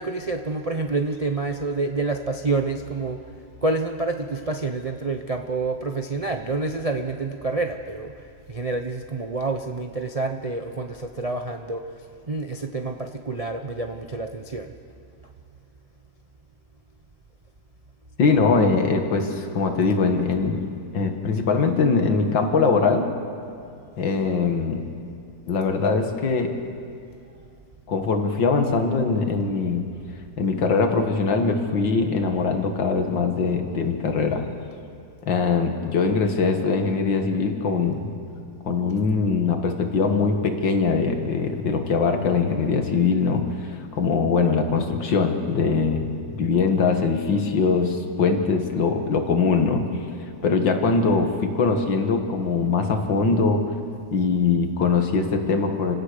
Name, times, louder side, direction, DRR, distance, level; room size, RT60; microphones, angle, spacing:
voice 1, 0.0-3.2 3.6-8.1 8.5-11.8 12.3-14.7, right 3 dB, 65° right, 4 dB, 0.3 m, -28 dB
voice 2, 18.2-20.7 20.9-23.1 24.0-24.8 25.5-26.5 27.9-29.8 30.4-34.4 35.3-38.1 38.7-49.8 50.4-53.6 54.1-55.9, left 4 dB, 75° left, 5 dB, 2.4 m, -22 dB
28.5 x 17.0 x 6.7 m, 2.4 s
omnidirectional pair, 2.1 m